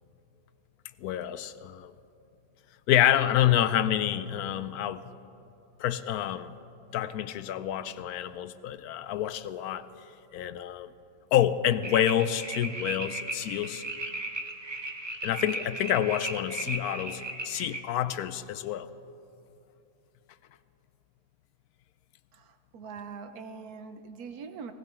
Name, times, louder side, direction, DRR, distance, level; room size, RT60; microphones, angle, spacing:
voice 1, 1.0-1.9 2.9-5.0 5.8-6.5 6.9-9.9 10.3-10.9 11.3-13.8 15.2-18.9, left 11 dB, 80° left, 13 dB, 1.1 m, -28 dB
sound 1, 11.8-17.8, right 2 dB, 25° right, 0.6 m, -36 dB
voice 2, 22.3-24.7, right 5 dB, 80° right, 8 dB, 1.4 m, -43 dB
18.0 x 16.0 x 4.4 m, 2.7 s
omnidirectional pair, 1.6 m